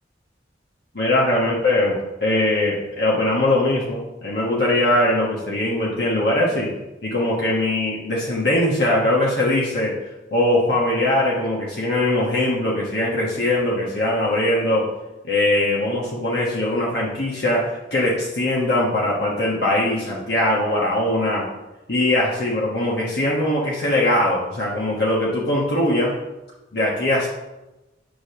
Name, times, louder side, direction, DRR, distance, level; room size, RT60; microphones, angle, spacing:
voice 1, 0.9-6.7 7.0-10.0 10.3-14.9 15.2-21.5 21.9-26.1 26.7-27.3, left 1 dB, 60° left, -5 dB, 1.4 m, -21 dB
8.6 x 3.4 x 5.7 m, 1.0 s
head